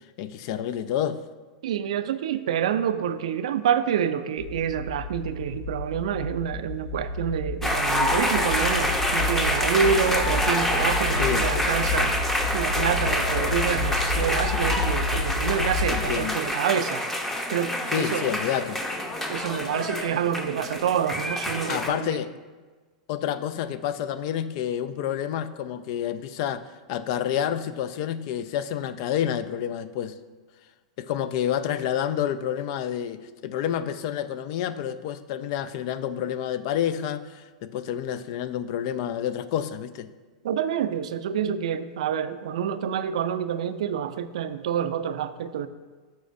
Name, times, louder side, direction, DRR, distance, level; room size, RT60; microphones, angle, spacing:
voice 1, 0.2-1.2 11.2-11.5 15.9-16.4 17.9-18.8 19.8-19.9 21.7-22.3 23.1-30.1 31.0-40.1, left 10 dB, 55° left, 13 dB, 0.4 m, -29 dB
voice 2, 1.6-12.1 12.5-17.0 17.5-18.3 19.3-22.2 40.4-45.7, right 8 dB, 75° right, 12 dB, 0.4 m, -27 dB
sound 1, 4.4-16.0, left 2 dB, 90° left, 2.1 m, -30 dB
sound 2, 7.6-21.9, left 1 dB, 10° left, 0.8 m, -27 dB
12.5 x 4.3 x 2.6 m, 1.4 s
hypercardioid pair, 110°, 3 cm